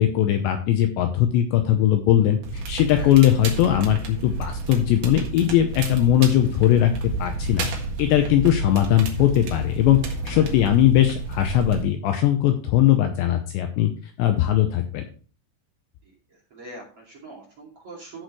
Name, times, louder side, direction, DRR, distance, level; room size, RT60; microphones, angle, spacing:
voice 1, 0.0-6.9 7.2-7.7 8.0-10.0 10.3-13.9 14.2-15.0, left 12 dB, 85° left, 6 dB, 2.6 m, -20 dB
Crackle, 2.4-11.8, right 3 dB, 60° right, 2.4 m, -30 dB
voice 2, 16.3-18.2, right 2 dB, 40° right, -2 dB, 2.5 m, -42 dB
14.0 x 6.6 x 3.1 m, 0.39 s
omnidirectional pair, 5.8 m